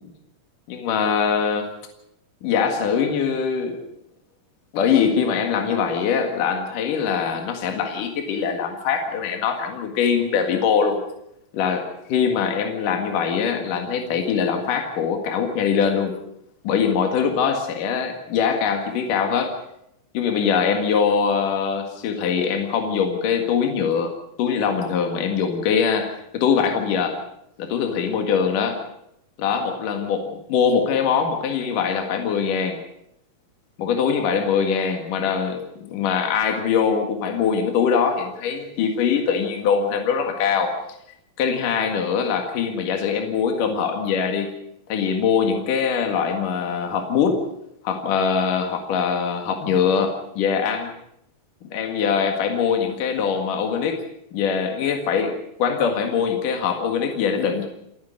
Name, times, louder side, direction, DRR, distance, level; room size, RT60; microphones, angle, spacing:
voice 1, 0.7-1.7 2.4-3.8 4.7-11.0 11.5-16.2 16.6-19.6 20.1-24.1 24.4-27.2 27.6-28.8 29.4-32.8 33.8-40.7 41.4-44.5 44.9-47.5 47.8-50.9 51.6-54.0 54.3-57.7, left 6 dB, 65° left, 3 dB, 3.3 m, -22 dB
29.0 x 11.0 x 8.2 m, 0.79 s
omnidirectional pair, 4.2 m